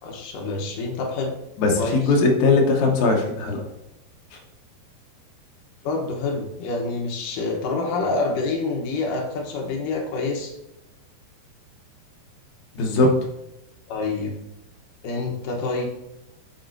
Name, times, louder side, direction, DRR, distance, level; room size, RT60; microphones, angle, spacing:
voice 1, 0.0-1.3 1.8-2.1 5.8-10.5 13.9-14.3 15.0-15.9, left 3 dB, 75° left, 1 dB, 2.0 m, -27 dB
voice 2, 1.6-3.6 4.3-4.4 12.7-13.1, left 3 dB, 90° left, 0 dB, 1.6 m, -19 dB
8.6 x 7.2 x 2.6 m, 0.91 s
omnidirectional pair, 5.2 m